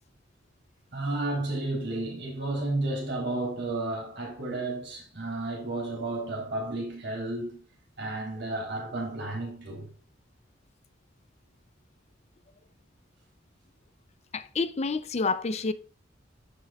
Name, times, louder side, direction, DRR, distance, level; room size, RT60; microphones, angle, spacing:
voice 1, 0.9-7.6 8.0-9.9, right 2 dB, 65° right, 3.6 m, -32 dB
voice 2, 14.3-15.7, left 4 dB, 35° left, 0.5 m, -28 dB
12.0 x 5.3 x 2.4 m
head